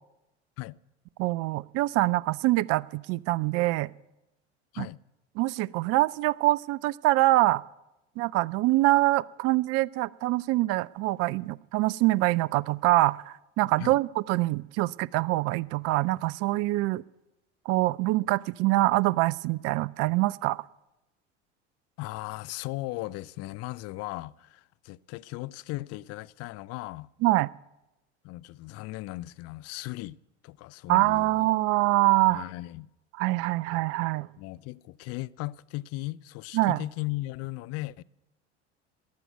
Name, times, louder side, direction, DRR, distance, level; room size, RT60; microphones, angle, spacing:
voice 1, 1.2-3.9 4.8-4.9 5.4-7.6 8.2-17.0 17.7-20.6 27.2-27.5 30.9-32.4 33.2-34.3 36.5-36.8, right 19 dB, 45° right, 0.4 m, -25 dB
voice 2, 22.0-27.1 28.2-30.2 30.4-31.5 32.3-32.9 34.4-38.0, left 19 dB, 45° left, 0.5 m, -37 dB
14.0 x 10.5 x 8.0 m
hypercardioid pair, 75°, 35 cm